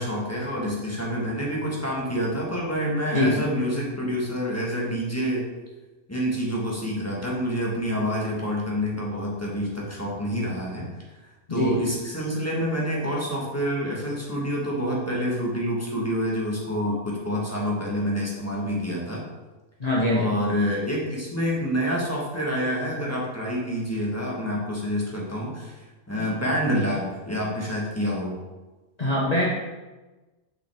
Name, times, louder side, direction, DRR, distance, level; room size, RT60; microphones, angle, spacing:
voice 1, 0.0-5.4 6.1-10.9 11.5-19.2 20.1-28.3, equal, 10° left, -4 dB, 1.3 m, -27 dB
voice 2, 11.5-11.8 19.8-20.3 26.2-26.3 29.0-29.5, left 1 dB, 35° left, -5 dB, 0.9 m, -23 dB
6.2 x 5.3 x 3.5 m, 1.2 s
omnidirectional pair, 1.4 m